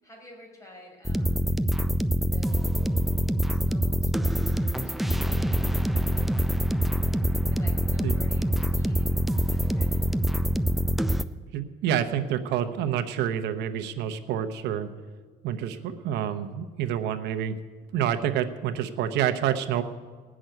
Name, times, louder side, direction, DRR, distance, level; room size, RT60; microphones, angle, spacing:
voice 1, 0.0-1.6 2.2-2.8 3.5-6.5 7.5-9.2 9.5-10.1, left 1 dB, 20° left, -1 dB, 5.2 m, -51 dB
sound 1, 1.1-11.2, equal, ahead, 0.5 m, -25 dB
voice 2, 11.5-14.9 15.4-17.6 17.9-19.8, right 9 dB, 80° right, 9 dB, 1.0 m, -28 dB
18.5 x 6.3 x 9.1 m, 1.5 s
cardioid pair, 100°, 17 cm